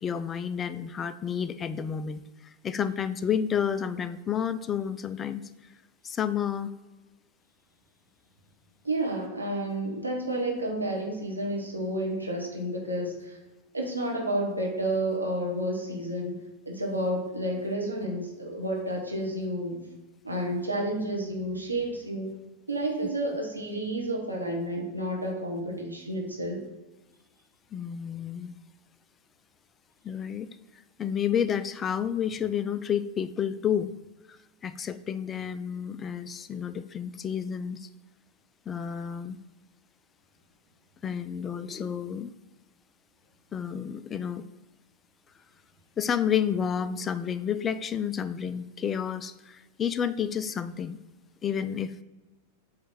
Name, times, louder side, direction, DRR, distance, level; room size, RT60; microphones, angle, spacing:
voice 1, 0.0-5.4 6.0-6.7 27.7-28.5 30.0-33.9 34.3-34.4 34.6-37.9 38.7-39.4 41.0-42.3 43.5-44.4 46.0-51.0 51.4-52.0, left 8 dB, 20° left, 13 dB, 0.4 m, -30 dB
voice 2, 8.8-13.4 13.7-16.4 16.6-19.9 20.2-22.3 22.7-26.6, right 1 dB, 85° right, -1 dB, 1.3 m, -30 dB
7.7 x 3.2 x 4.3 m, 1.1 s
figure-of-eight pair, 90°, 0 cm